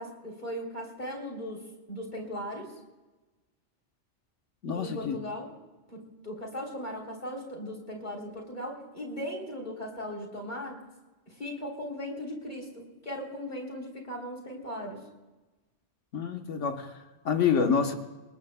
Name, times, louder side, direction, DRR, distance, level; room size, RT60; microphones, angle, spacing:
voice 1, 0.0-2.7 4.7-5.5 5.9-10.8 11.3-15.0, equal, 40° left, 0 dB, 3.6 m, -38 dB
voice 2, 4.6-5.2 16.1-16.9 17.2-17.9, left 6 dB, 90° left, 5 dB, 1.5 m, -27 dB
26.5 x 20.0 x 2.3 m, 1.1 s
omnidirectional pair, 1.2 m